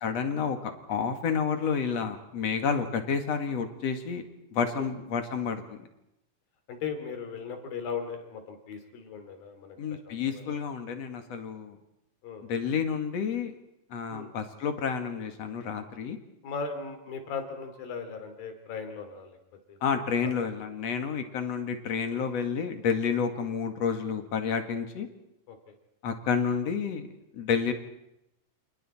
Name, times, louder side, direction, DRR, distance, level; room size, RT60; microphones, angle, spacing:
voice 1, 0.0-4.2 4.5-5.8 9.8-11.8 12.5-13.5 13.9-16.2 19.8-25.1 26.0-27.1 27.3-27.7, left 6 dB, 50° left, 6 dB, 2.8 m, -30 dB
voice 2, 6.7-10.6 12.2-12.5 14.1-14.3 16.4-19.4 19.7-19.8 20.2-20.3 25.5-25.7, left 5 dB, 90° left, 7 dB, 4.6 m, -38 dB
29.0 x 29.0 x 4.4 m, 0.84 s
omnidirectional pair, 4.0 m